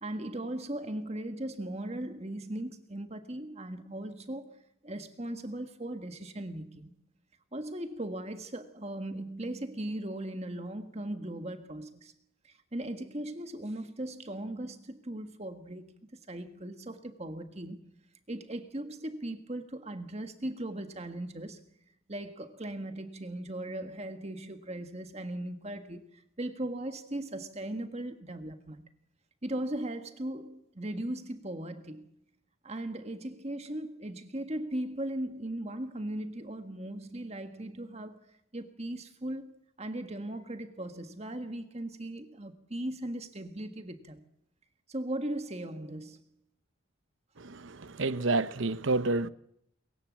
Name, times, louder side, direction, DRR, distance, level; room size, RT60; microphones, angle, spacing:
voice 1, 0.0-6.9 7.5-12.1 12.4-17.9 18.3-21.6 22.1-28.8 29.4-32.1 32.6-38.3 38.5-44.2 44.9-46.2, right 1 dB, 30° right, 1.6 m, -38 dB
voice 2, 47.4-49.3, right 3 dB, 65° right, 0.9 m, -29 dB
23.5 x 21.5 x 7.5 m
head